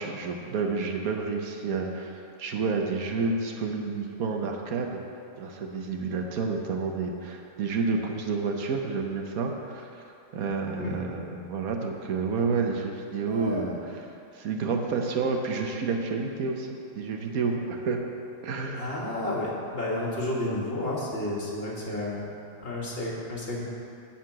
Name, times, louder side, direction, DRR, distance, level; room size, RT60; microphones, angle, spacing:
voice 1, 0.0-5.0 5.4-9.9 10.3-13.7 14.3-16.7 16.9-18.1 18.4-18.9, right 4 dB, 90° right, 2 dB, 1.4 m, -29 dB
voice 2, 13.3-13.7 18.7-22.3 22.6-23.6, left 1 dB, 45° left, -4 dB, 1.8 m, -31 dB
11.5 x 4.4 x 7.6 m, 2.6 s
omnidirectional pair, 1.5 m